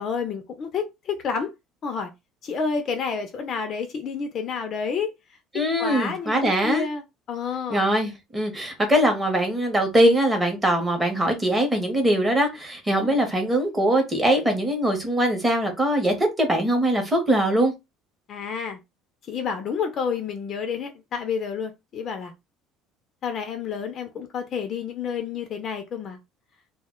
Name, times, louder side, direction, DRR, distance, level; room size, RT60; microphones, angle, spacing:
voice 1, 0.0-1.5 1.8-2.1 2.4-5.1 5.5-7.0 7.3-7.8 13.0-13.2 18.3-18.8 19.3-22.3 23.2-26.2, left 6 dB, 30° left, 0.3 m, -29 dB
voice 2, 5.5-6.9 7.7-17.7, right 1 dB, 10° right, 0.6 m, -22 dB
2.1 x 2.0 x 3.5 m
cardioid pair, 180°, 0 cm